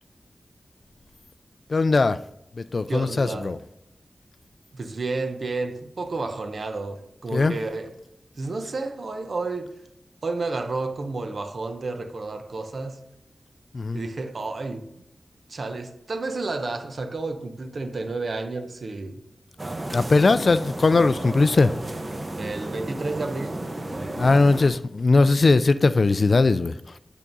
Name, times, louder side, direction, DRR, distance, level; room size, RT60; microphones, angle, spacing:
voice 1, 1.7-2.2 2.5-3.6 7.3-7.6 13.7-14.0 19.9-21.7 24.2-27.0, left 3 dB, 60° left, 0.3 m, -20 dB
voice 2, 2.9-3.5 4.7-7.9 8.4-9.8 10.2-13.0 13.9-14.9 15.5-19.2 20.3-20.4 22.4-23.6, right 3 dB, 65° right, 0.8 m, -31 dB
sound 1, 19.6-24.7, right 1 dB, 35° right, 0.8 m, -33 dB
8.3 x 3.7 x 5.3 m
wide cardioid pair, 80°, 0 cm